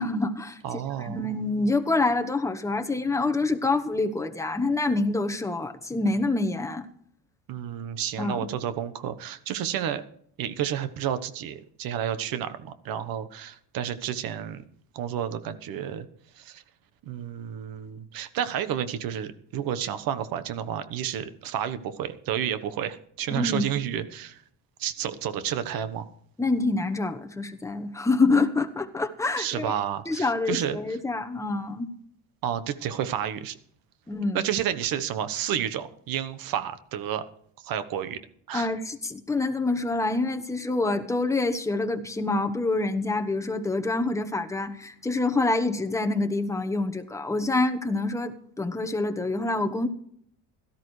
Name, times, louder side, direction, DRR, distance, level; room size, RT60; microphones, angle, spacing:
voice 1, 0.0-0.6 1.0-6.8 8.2-8.5 23.3-23.7 26.4-29.7 30.1-31.9 34.1-34.4 38.5-49.9, left 2 dB, 10° left, 5 dB, 1.0 m, -26 dB
voice 2, 0.6-1.3 7.5-10.0 10.4-14.6 14.9-16.1 16.4-16.6 17.0-24.4 24.8-26.0 29.4-30.8 32.4-33.6 34.3-37.2 37.6-38.2 38.5-38.7, right 9 dB, 65° right, 12 dB, 1.2 m, -31 dB
17.0 x 13.5 x 3.2 m, 0.66 s
cardioid pair, 120°, 37 cm